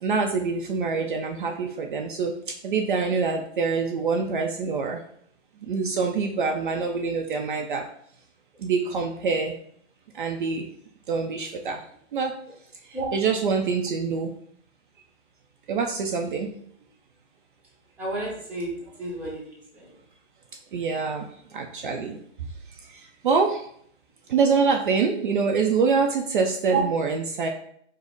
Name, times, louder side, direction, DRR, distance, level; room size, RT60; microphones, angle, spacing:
voice 1, 0.0-2.3 2.6-5.0 5.7-7.8 8.6-9.5 10.2-10.6 11.1-11.8 12.1-12.3 13.1-14.3 15.7-16.5 20.7-21.3 21.5-22.2 23.2-23.6 24.3-27.5, right 5 dB, 50° right, 2 dB, 0.5 m, -25 dB
voice 2, 18.0-18.7 19.0-19.9 26.7-26.8, right 3 dB, 5° right, -6 dB, 0.8 m, -31 dB
5.1 x 2.0 x 3.9 m, 0.64 s
hypercardioid pair, 155°, 35 cm